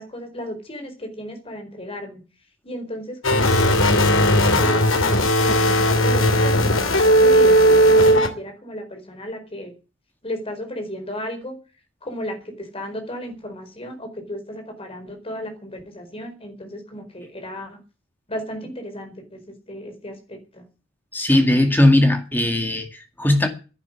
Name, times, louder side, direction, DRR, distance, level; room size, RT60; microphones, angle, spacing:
voice 1, 0.0-2.2 2.6-9.7 10.2-11.6 12.0-17.8 18.3-20.7, equal, 30° left, 4.6 m, -34 dB
sound 1, 3.2-8.3, equal, 80° left, 3.0 m, -16 dB
voice 2, 21.1-23.5, left 1 dB, 10° left, 2.1 m, -18 dB
11.0 x 10.5 x 9.8 m
head